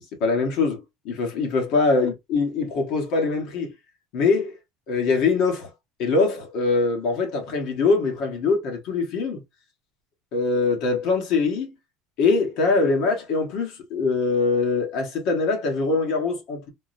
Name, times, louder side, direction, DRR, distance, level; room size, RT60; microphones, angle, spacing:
voice 1, 0.2-3.7 4.1-4.6 4.9-5.7 6.0-9.4 10.3-11.7 12.2-16.7, left 4 dB, 60° left, 1.3 m, -23 dB
3.7 x 2.2 x 2.5 m
supercardioid pair, 130°, 0 cm